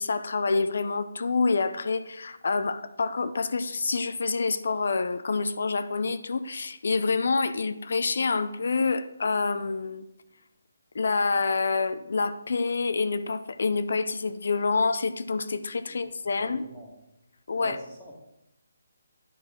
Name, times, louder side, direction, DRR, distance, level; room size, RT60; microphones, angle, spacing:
voice 1, 0.0-10.0 10.9-16.6 17.5-17.8, left 4 dB, 65° left, 0.4 m, -27 dB
voice 2, 15.9-16.9 17.5-18.2, equal, ahead, 1.5 m, -45 dB
9.8 x 4.5 x 4.3 m
hypercardioid pair, 165°, 0 cm